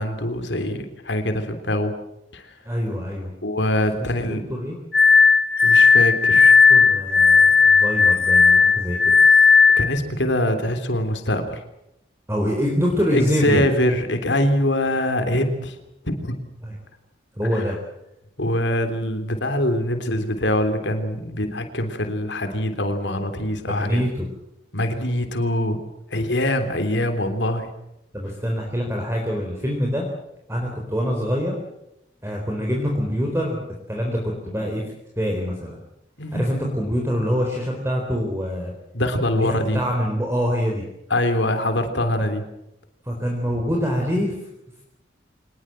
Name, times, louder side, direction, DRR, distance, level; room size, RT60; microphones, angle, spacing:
voice 1, 0.0-1.9 2.3-2.5 3.4-4.4 5.6-6.6 9.8-11.6 13.1-15.8 16.0-16.4 17.5-17.6 18.4-24.0 24.7-25.8 26.1-27.7 36.2-36.4 38.9-39.8 41.1-42.4, left 1 dB, 80° left, 7 dB, 3.4 m, -23 dB
voice 2, 2.7-3.3 4.2-4.8 6.3-6.4 6.7-9.1 12.3-13.7 16.6-16.7 17.4-17.8 23.7-24.3 28.1-30.0 30.5-31.6 32.2-33.6 33.9-34.8 35.2-35.8 36.3-38.7 39.4-40.8 43.0-44.4, equal, 15° right, 0 dB, 4.0 m, -25 dB
Glass, 4.9-10.0, left 5 dB, 55° left, 1.4 m, -14 dB
25.0 x 20.5 x 7.7 m, 0.85 s
head